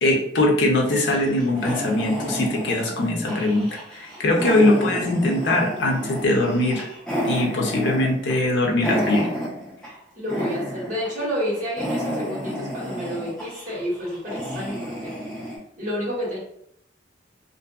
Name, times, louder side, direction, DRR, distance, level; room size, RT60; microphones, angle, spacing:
voice 1, 0.0-6.9 7.2-9.3, left 1 dB, 80° left, 1 dB, 0.6 m, -21 dB
sound 1, 0.9-10.0 10.3-11.1 11.4-15.6, equal, 5° left, 1.0 m, -31 dB
voice 2, 10.1-15.1 15.8-16.4, equal, 45° right, -6 dB, 1.3 m, -29 dB
2.6 x 2.6 x 2.3 m, 0.72 s
head